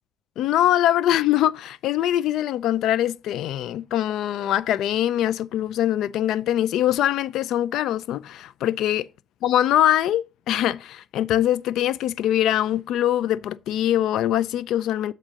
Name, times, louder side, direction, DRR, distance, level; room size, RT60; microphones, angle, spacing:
voice 1, 0.4-9.1 9.4-15.1, left 12 dB, 85° left, 0.3 m, -23 dB
7.4 x 3.9 x 6.3 m
cardioid pair, 90°, 0 cm